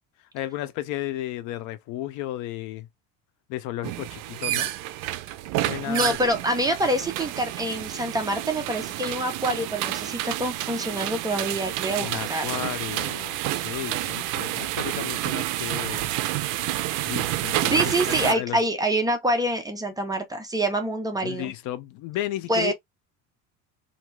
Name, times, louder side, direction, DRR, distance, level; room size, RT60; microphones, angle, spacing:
voice 1, 0.3-2.9 3.5-4.7 5.7-6.3 11.9-13.4 13.6-16.1 17.1-17.9 18.2-18.6 21.2-22.7, left 14 dB, 65° left, 0.6 m, -33 dB
sound 1, 3.8-18.3, right 15 dB, 70° right, 0.5 m, -29 dB
voice 2, 5.9-12.5 17.7-21.5 22.5-22.7, right 1 dB, 10° right, 0.5 m, -26 dB
2.6 x 2.2 x 3.0 m
cardioid pair, 135°, 32 cm